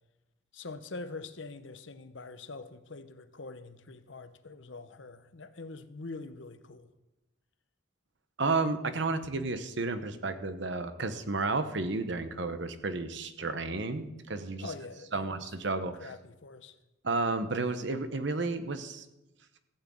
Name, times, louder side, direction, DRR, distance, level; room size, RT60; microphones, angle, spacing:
voice 1, 0.5-6.9 14.6-15.5 15.9-16.8, left 3 dB, 65° left, 11 dB, 0.8 m, -44 dB
voice 2, 8.4-14.7 15.1-16.1 17.0-19.0, right 3 dB, 60° right, 10 dB, 1.0 m, -32 dB
14.5 x 6.2 x 8.4 m, 0.96 s
head